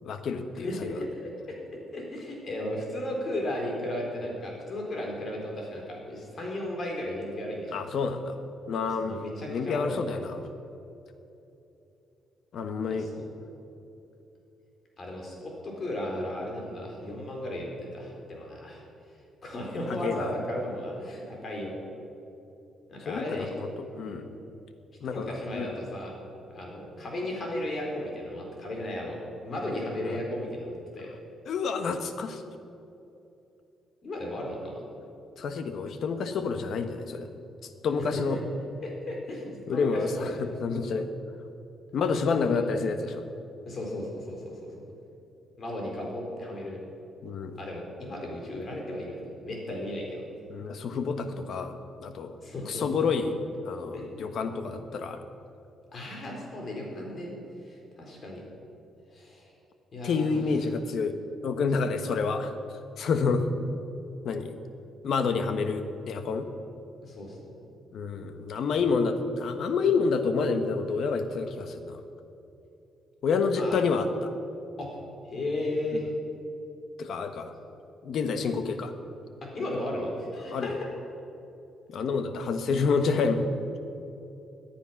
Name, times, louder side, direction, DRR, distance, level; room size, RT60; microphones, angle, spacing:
voice 1, 0.0-1.0 7.7-8.4 8.7-9.2 9.5-10.4 12.5-13.1 20.0-20.3 23.1-23.7 23.9-24.2 25.0-25.8 30.0-30.2 31.4-32.4 35.4-37.3 37.6-38.4 39.7-41.1 41.9-43.2 47.2-47.6 50.5-52.3 52.7-53.4 53.6-55.2 60.0-61.2 61.4-62.6 63.0-63.5 64.2-64.6 65.0-66.5 67.9-72.0 73.2-74.3 77.0-77.5 78.0-78.9 80.5-80.8 81.9-83.5, left 4 dB, 65° left, 8 dB, 1.2 m, -28 dB
voice 2, 0.5-1.3 1.9-7.8 9.0-10.0 12.9-13.2 15.0-18.8 19.4-21.7 22.9-23.5 24.0-24.2 25.0-26.1 26.5-31.1 34.0-34.8 38.0-38.4 38.8-40.4 42.3-42.5 43.6-44.7 45.6-46.8 47.6-50.2 52.4-52.9 53.9-54.2 55.9-57.3 57.6-58.4 59.1-59.5 59.9-60.4 67.0-67.5 73.5-73.8 74.8-74.9 75.2-76.1 79.4-80.9, left 1 dB, 45° left, -1 dB, 4.4 m, -35 dB
17.5 x 10.0 x 5.9 m, 2.9 s
cardioid pair, 90°, 0 cm